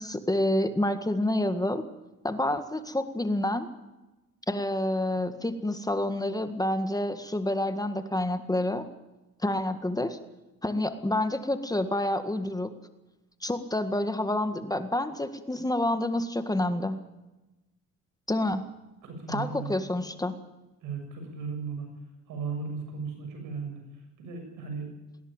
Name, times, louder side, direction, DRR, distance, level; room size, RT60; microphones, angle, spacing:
voice 1, 0.0-1.8 2.2-3.7 4.5-8.8 9.4-10.2 10.6-12.7 13.4-17.0 18.3-18.6 19.3-20.3, left 1 dB, 10° left, 9 dB, 1.8 m, -28 dB
voice 2, 19.0-19.7 20.8-21.9 22.3-23.8 24.2-24.9, right 5 dB, 85° right, 4 dB, 7.1 m, -36 dB
20.0 x 17.0 x 9.0 m, 1.0 s
cardioid pair, 90°, 30 cm